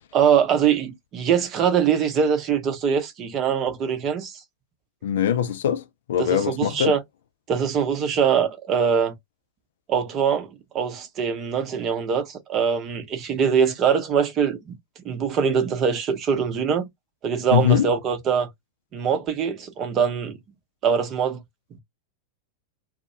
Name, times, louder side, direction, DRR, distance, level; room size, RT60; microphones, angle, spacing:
voice 1, 0.1-4.4 6.2-7.0 7.5-9.1 9.9-10.5 10.7-14.7 15.0-16.9 17.2-18.5 18.9-20.4 20.8-21.4, right 7 dB, 30° right, 0.7 m, -23 dB
voice 2, 5.0-6.9 17.5-17.9, left 10 dB, 60° left, 0.4 m, -22 dB
2.3 x 2.1 x 2.8 m
figure-of-eight pair, 90°, 0 cm